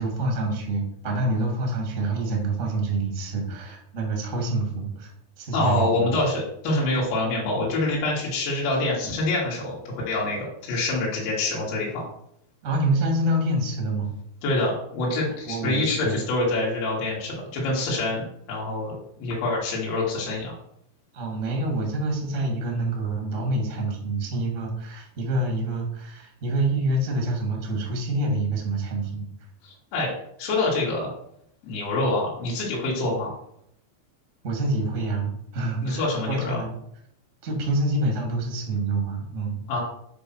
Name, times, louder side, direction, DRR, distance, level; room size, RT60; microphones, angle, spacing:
voice 1, 0.0-5.1 5.4-6.1 9.0-9.1 10.7-10.8 12.6-14.1 15.5-16.2 21.1-29.2 34.4-36.8 37.4-39.6, right 2 dB, 25° right, 0 dB, 1.6 m, -27 dB
voice 2, 5.5-12.1 14.4-20.6 29.6-30.1 30.4-31.1 31.6-33.3 35.8-36.6 39.7-39.8, left 2 dB, 75° left, -5 dB, 4.7 m, -26 dB
9.7 x 4.3 x 6.3 m, 0.72 s
omnidirectional pair, 5.2 m